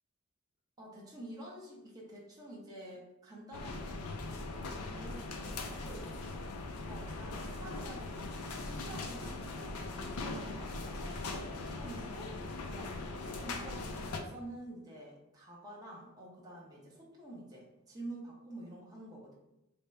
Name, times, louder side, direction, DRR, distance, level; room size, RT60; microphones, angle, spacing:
voice 1, 0.8-3.8 4.7-6.1 6.9-12.3 12.6-19.3, right 1 dB, 15° right, -4 dB, 0.7 m, -49 dB
sound 1, 3.5-14.2, left 2 dB, 80° left, 0.5 m, -40 dB
3.5 x 2.1 x 4.1 m, 0.89 s
head